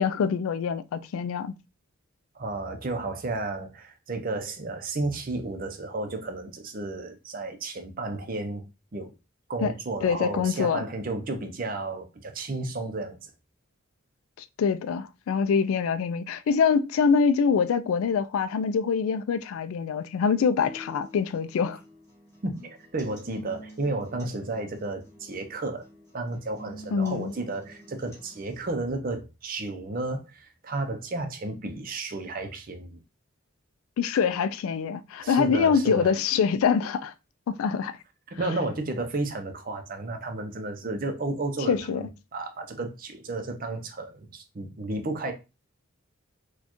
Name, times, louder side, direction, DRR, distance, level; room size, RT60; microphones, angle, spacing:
voice 1, 0.0-1.5 9.6-9.7 10.0-10.8 14.6-21.8 26.9-27.3 34.0-37.1 37.5-38.0 41.7-42.1, left 6 dB, 80° left, 0.3 m, -25 dB
voice 2, 2.4-8.6 8.9-9.1 9.5-13.2 22.4-25.9 26.1-33.0 35.2-36.1 38.3-45.3, right 2 dB, 40° right, 0.5 m, -32 dB
sound 1, 20.6-28.6, equal, 15° left, 1.6 m, -48 dB
4.3 x 2.3 x 2.9 m
head